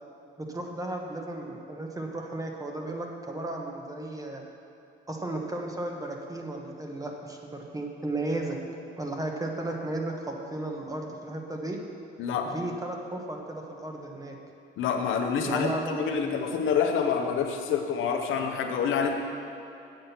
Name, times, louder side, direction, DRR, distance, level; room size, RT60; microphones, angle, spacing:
voice 1, 0.4-4.4 5.1-8.6 9.0-11.8 12.4-14.4 15.4-16.4, right 2 dB, 15° right, 1 dB, 1.3 m, -34 dB
voice 2, 12.2-12.6 14.8-19.1, left 6 dB, 80° left, 3 dB, 0.9 m, -27 dB
7.8 x 7.6 x 5.8 m, 2.7 s
cardioid pair, 90°, 20 cm